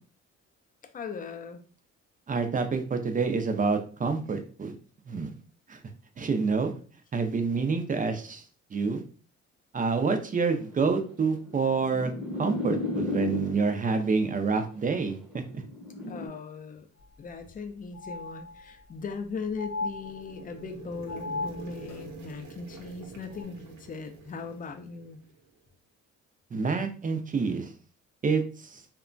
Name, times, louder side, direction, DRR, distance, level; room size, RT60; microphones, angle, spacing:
voice 1, 0.9-1.6 16.1-16.9 17.2-25.2, left 5 dB, 30° left, 7 dB, 0.4 m, -39 dB
voice 2, 2.3-4.7 5.1-5.3 5.7-5.8 6.2-6.7 7.1-8.4 8.7-9.0 9.7-12.1 12.4-15.4 26.5-27.7 28.2-28.8, right 4 dB, 30° right, 7 dB, 0.4 m, -27 dB
sound 1, 10.7-13.8 14.7-16.3, left 2 dB, 5° right, 0.8 m, -34 dB
sound 2, 17.0-17.1 17.4-17.5 17.9-18.9 19.6-20.6 21.1-22.0 23.3-23.4, left 3 dB, 90° left, 0.8 m, -37 dB
sound 3, 19.5-25.5, right 4 dB, 70° right, 0.8 m, -47 dB
2.9 x 2.2 x 2.5 m, 0.39 s
cardioid pair, 90°, 30 cm